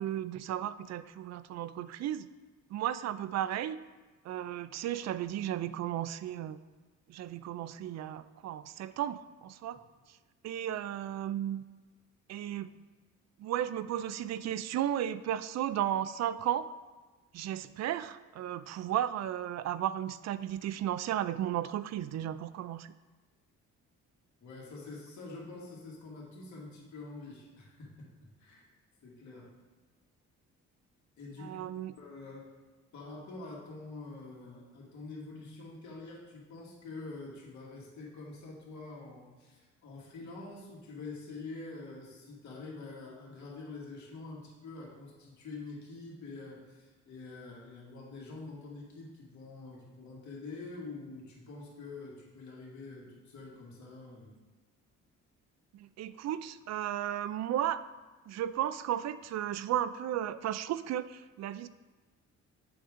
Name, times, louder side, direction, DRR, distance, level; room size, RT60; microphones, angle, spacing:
voice 1, 0.0-2.3 2.7-3.8 4.2-6.6 7.1-9.8 10.4-11.6 12.3-12.8 13.4-16.7 17.3-22.9 31.4-31.9 55.7-57.8 58.3-61.7, right 11 dB, 60° right, 14 dB, 0.4 m, -34 dB
voice 2, 24.4-28.1 28.4-28.6 29.0-29.5 31.2-31.6 32.0-32.5 32.9-54.3, left 3 dB, 70° left, -3 dB, 2.1 m, -46 dB
7.9 x 5.0 x 3.7 m, 1.3 s
cardioid pair, 90°, 30 cm